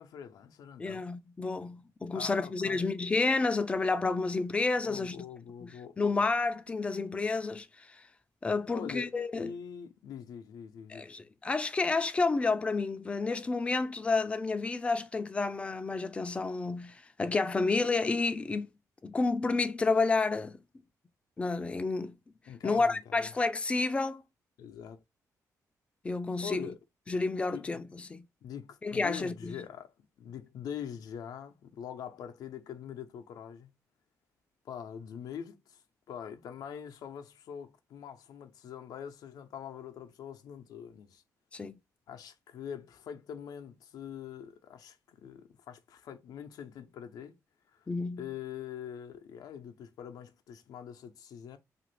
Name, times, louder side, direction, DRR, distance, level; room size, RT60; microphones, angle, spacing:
voice 1, 0.0-1.1 2.1-2.8 4.8-6.0 8.7-9.1 9.4-11.1 22.5-23.3 24.6-25.0 26.4-26.8 27.5-27.9 28.4-33.7 34.6-41.2 42.1-47.4 47.7-47.9 48.2-51.6, left 8 dB, 80° left, 0.5 m, -44 dB
voice 2, 0.8-5.2 5.6-5.7 6.0-8.1 8.4-9.5 10.9-18.7 19.0-20.6 21.4-22.2 22.6-24.2 26.0-26.7 27.1-28.3 28.8-29.6 41.5-41.8 47.9-48.3, left 3 dB, 20° left, 0.3 m, -30 dB
2.8 x 2.5 x 3.0 m
wide cardioid pair, 145°, 6 cm